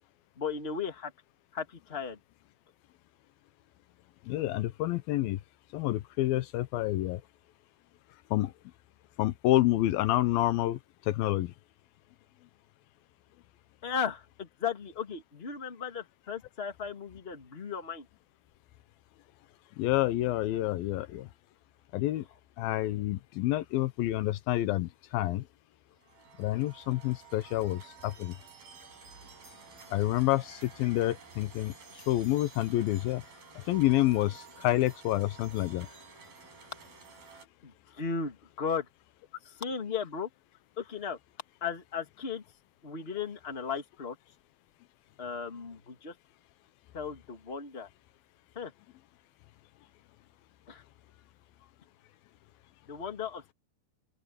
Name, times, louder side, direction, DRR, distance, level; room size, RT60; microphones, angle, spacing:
voice 1, 0.4-1.1 1.5-2.2 13.8-18.0 37.6-38.9 39.4-40.3 40.8-41.2 41.6-42.4 42.8-44.2 45.2-46.1 46.9-47.9 48.6-48.7 50.7-50.8 52.9-53.5, left 6 dB, 20° left, 2.0 m, -36 dB
voice 2, 4.3-5.4 5.7-7.2 8.3-8.5 9.2-10.8 11.1-11.5 19.8-21.3 21.9-22.2 22.6-25.4 26.4-28.3 29.9-31.7 32.1-33.2 33.7-35.9, left 15 dB, 80° left, 2.6 m, -28 dB
sound 1, 26.0-37.5, right 5 dB, 70° right, 8.1 m, -52 dB
open air
omnidirectional pair, 4.2 m